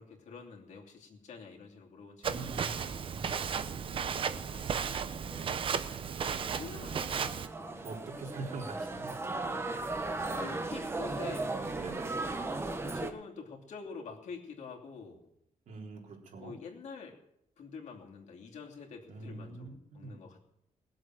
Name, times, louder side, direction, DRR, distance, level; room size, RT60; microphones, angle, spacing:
voice 1, 0.0-3.1 3.9-6.0 6.3-7.8 10.4-11.7 12.8-15.3 16.4-17.1 17.6-20.5, left 5 dB, 65° left, -1 dB, 2.9 m, -48 dB
Walk footsteps, 2.2-7.5, right 7 dB, 40° right, 0.7 m, -34 dB
voice 2, 2.2-2.9 3.1-3.5 7.8-9.2 11.8-12.1 15.7-16.6 19.1-20.2, right 3 dB, 75° right, -1 dB, 3.6 m, -44 dB
sound 1, 6.5-13.1, right 2 dB, 20° right, 1.1 m, -36 dB
20.0 x 7.9 x 7.6 m, 0.78 s
wide cardioid pair, 175°, 13 cm